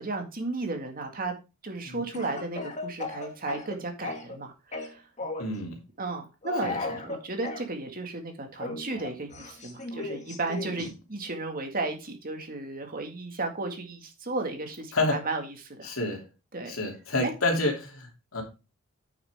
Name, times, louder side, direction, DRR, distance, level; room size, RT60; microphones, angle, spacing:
voice 1, 0.0-1.3 1.6-5.0 6.0-6.7 7.0-15.9 16.5-16.8 17.2-17.3, right 3 dB, 45° right, 2.0 m, -34 dB
Speech / Cough, 2.1-4.4 4.7-5.5 6.4-7.6 8.6-10.9, left 3 dB, 35° left, 2.0 m, -36 dB
voice 2, 5.4-5.8 6.6-6.8 14.9-15.1 15.8-16.2 16.7-18.4, left 2 dB, 70° left, 2.9 m, -28 dB
8.8 x 7.0 x 3.6 m
head